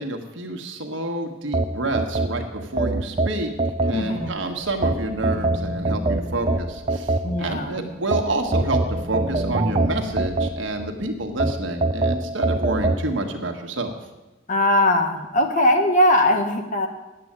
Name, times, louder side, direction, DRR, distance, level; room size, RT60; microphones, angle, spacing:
voice 1, 0.0-3.5 3.9-13.9, right 2 dB, 70° right, 4 dB, 1.5 m, -28 dB
sound 1, 1.5-4.3 4.8-7.6 8.1-10.9 11.4-13.0, right 2 dB, 30° right, 0.6 m, -23 dB
sound 2, 3.8-7.7 8.1-11.5, left 2 dB, 5° left, 2.1 m, -38 dB
voice 2, 3.9-4.3 7.2-7.9 14.5-16.9, left 1 dB, 40° left, 5 dB, 1.4 m, -20 dB
10.0 x 7.8 x 8.8 m, 1.1 s
head